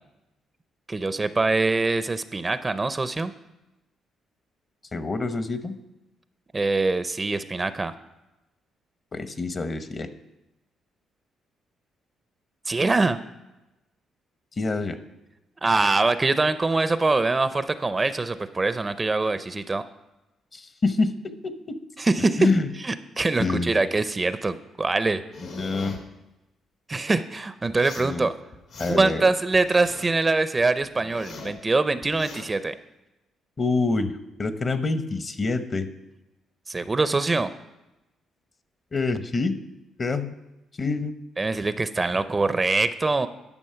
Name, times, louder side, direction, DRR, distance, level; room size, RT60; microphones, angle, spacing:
voice 1, 0.9-3.3 6.5-7.9 12.7-13.2 15.6-19.8 22.0-22.5 22.8-25.2 26.9-28.3 28.9-32.8 36.7-37.5 41.4-43.3, right 3 dB, 25° right, 12 dB, 0.5 m, -23 dB
voice 2, 4.9-5.7 9.1-10.1 14.6-15.0 20.5-21.1 21.4-21.8 22.4-22.7 23.4-23.8 25.4-26.0 28.0-28.3 28.8-29.2 33.6-35.9 38.9-39.5 40.0-40.4 40.8-41.1, left 3 dB, 35° left, 10 dB, 0.8 m, -26 dB
sound 1, 25.3-26.0 27.7-28.1 28.5-29.2 29.5-30.2 30.6-31.6 32.0-32.5, left 3 dB, 75° left, 1.8 m, -41 dB
11.0 x 6.1 x 5.7 m, 0.98 s
cardioid pair, 90°, 0 cm